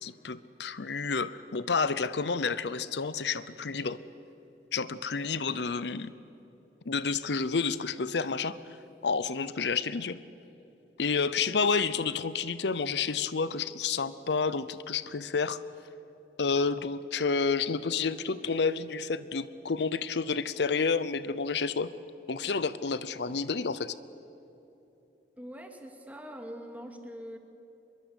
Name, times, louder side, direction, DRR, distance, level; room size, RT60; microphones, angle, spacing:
voice 1, 0.0-4.0 4.7-6.1 6.9-8.8 9.0-10.2 11.0-15.6 16.4-21.9 22.3-23.9, left 5 dB, 75° left, 15 dB, 0.7 m, -30 dB
voice 2, 25.4-27.4, equal, 10° right, 4 dB, 2.4 m, -43 dB
25.0 x 22.5 x 8.2 m, 3.0 s
head